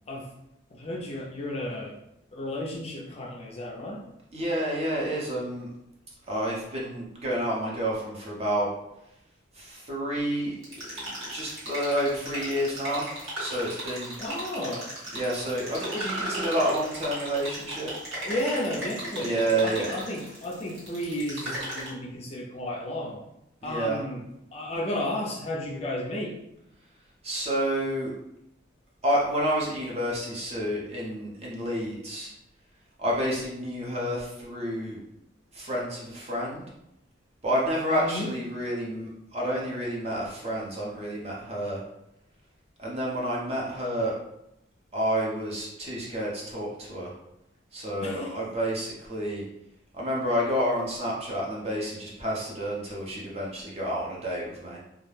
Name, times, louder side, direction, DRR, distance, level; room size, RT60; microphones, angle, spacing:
voice 1, 0.7-1.9 2.3-4.0 14.2-14.9 18.2-23.2 23.6-24.2 24.5-26.3 37.9-38.3 48.0-48.3, left 1 dB, 30° left, -2 dB, 0.4 m, -33 dB
voice 2, 4.3-5.7 6.3-8.7 9.5-13.1 13.4-14.2 15.1-17.9 19.2-19.9 23.6-24.0 27.2-28.1 29.0-32.3 33.0-35.0 35.5-36.6 37.4-41.8 42.8-44.1 44.9-47.1 47.7-49.4 49.9-54.8, equal, 30° right, -4 dB, 0.6 m, -29 dB
sound 1, 10.6-21.9, right 1 dB, 75° right, 1.4 m, -36 dB
2.3 x 2.1 x 3.1 m, 0.83 s
head